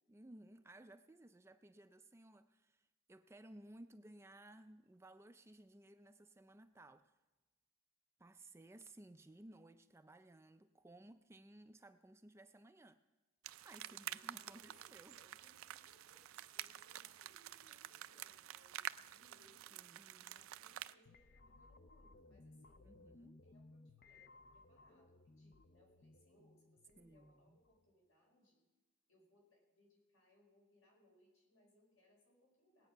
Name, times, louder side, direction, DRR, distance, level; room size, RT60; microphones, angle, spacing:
voice 1, 0.1-7.1 8.2-13.0 13.6-15.2 19.7-20.4 22.8-23.4 27.0-27.6, right 1 dB, 10° right, 10 dB, 0.3 m, -59 dB
sound 1, 13.4-20.9, right 12 dB, 80° right, 0.4 m, -49 dB
voice 2, 13.8-19.8 20.1-22.9 23.4-28.6 29.1-32.9, left 1 dB, 75° left, -1 dB, 5.0 m, -71 dB
sound 2, 21.0-27.9, left 2 dB, 45° left, 0.5 m, -63 dB
18.5 x 8.9 x 5.7 m, 1.2 s
head